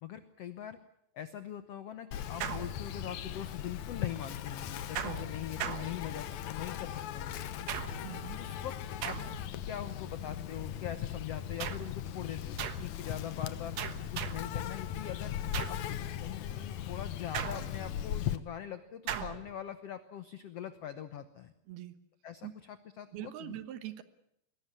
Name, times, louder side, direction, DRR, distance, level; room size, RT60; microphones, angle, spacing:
voice 1, 0.0-0.8 1.1-7.4 8.4-9.2 9.6-13.8 14.1-15.3 15.7-15.8 16.2-21.5 22.2-23.6, left 10 dB, 85° left, 11 dB, 1.3 m, -42 dB
Insect, 2.1-18.4, left 10 dB, 70° left, 1.9 m, -38 dB
sound 1, 2.4-3.3 5.0-6.5 7.7-8.2 9.0-9.6 11.6-12.0 12.6-13.0 13.8-14.6 15.5-15.9 17.3-18.0 19.1-19.5, right 8 dB, 60° right, 2.0 m, -39 dB
voice 2, 8.0-8.4 21.7-22.0 22.4-22.5 23.1-24.0, right 13 dB, 85° right, 12 dB, 3.2 m, -42 dB
21.5 x 18.0 x 9.8 m, 0.77 s
omnidirectional pair, 4.3 m